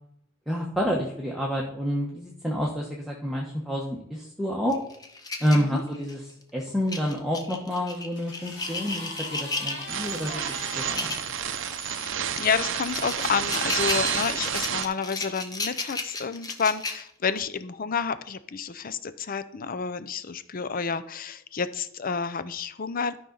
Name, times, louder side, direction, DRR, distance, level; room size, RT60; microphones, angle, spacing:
voice 1, 0.5-4.8 5.4-6.2 6.5-10.4 10.7-11.2, equal, ahead, -3 dB, 1.0 m, -28 dB
sound 1, 4.7-6.3 6.9-10.1 10.8-11.3 11.7-11.8 12.4-17.4, left 3 dB, 20° left, 0.9 m, -34 dB
sound 2, 7.7-12.0 12.8-13.9 14.8-14.9, left 3 dB, 55° left, 2.2 m, -42 dB
sound 3, 9.9-14.9, right 8 dB, 60° right, 0.6 m, -30 dB
voice 2, 11.8-23.2, left 6 dB, 40° left, 14 dB, 0.5 m, -30 dB
12.0 x 5.5 x 3.9 m, 0.73 s
head